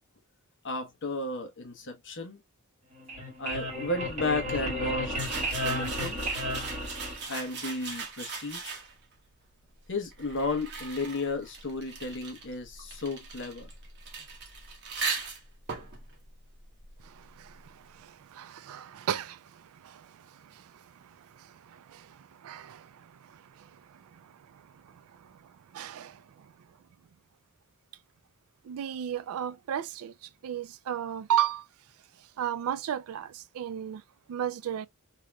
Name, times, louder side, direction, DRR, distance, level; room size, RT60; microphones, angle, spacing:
voice 1, 0.6-2.4 3.4-6.2 7.3-8.8 9.9-13.7, left 2 dB, 60° left, 1.0 m, -34 dB
sound 1, 2.9-7.6, equal, 30° right, 1.8 m, -33 dB
sound 2, 5.1-9.1 9.9-17.3, right 4 dB, 50° right, 1.0 m, -39 dB
voice 2, 17.0-26.5 28.6-31.7 32.4-34.0 34.3-34.9, right 10 dB, 70° right, 0.3 m, -35 dB
3.2 x 2.9 x 2.3 m
head